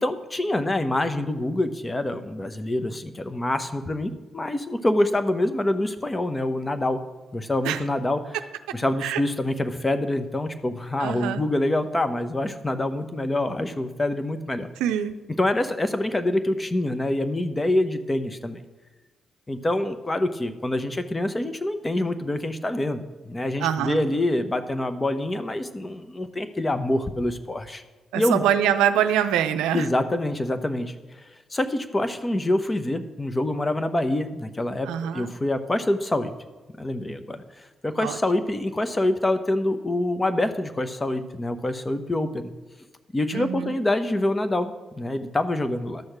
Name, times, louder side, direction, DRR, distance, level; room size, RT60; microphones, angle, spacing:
voice 1, 0.0-7.0 7.3-8.4 8.7-14.7 15.4-18.6 19.5-27.8 28.1-28.4 29.7-30.9 31.5-36.3 36.8-37.4 37.8-42.5 43.1-46.0, left 1 dB, 25° left, 10 dB, 1.1 m, -26 dB
voice 2, 11.0-11.4 14.8-15.1 23.6-24.0 28.1-29.9 34.8-35.3 38.0-38.2 43.3-43.7, right 10 dB, 85° right, 9 dB, 0.5 m, -24 dB
12.0 x 6.4 x 6.0 m, 1.3 s
hypercardioid pair, 45°, 0 cm